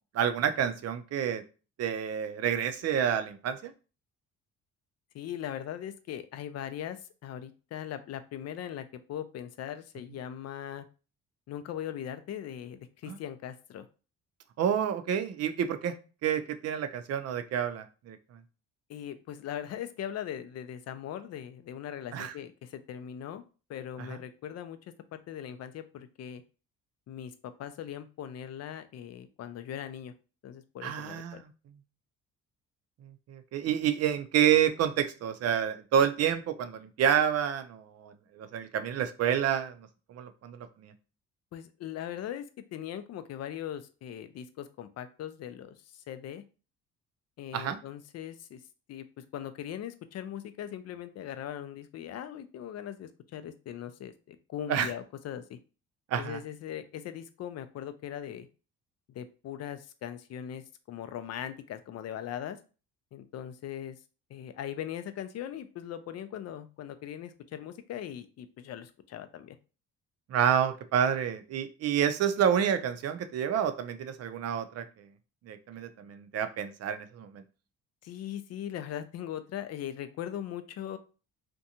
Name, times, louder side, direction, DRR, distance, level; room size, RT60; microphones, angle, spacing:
voice 1, 0.1-1.4 1.8-3.7 13.1-13.2 14.6-15.9 16.2-18.2 22.1-22.3 24.1-24.2 30.8-31.5 33.3-40.9 47.5-47.8 54.7-54.9 56.1-56.4 70.3-74.8 75.5-77.4, right 9 dB, 50° right, 9 dB, 0.5 m, -29 dB
voice 2, 5.1-10.9 11.5-13.9 18.9-23.4 23.7-24.8 25.1-26.4 27.1-30.1 30.4-31.4 41.5-42.4 42.7-46.4 47.4-48.6 48.9-55.6 56.2-58.5 59.1-62.6 63.1-64.0 64.3-69.6 78.0-81.0, left 10 dB, 50° left, 10 dB, 0.5 m, -40 dB
2.5 x 2.2 x 2.8 m, 0.34 s
supercardioid pair, 80°, 33 cm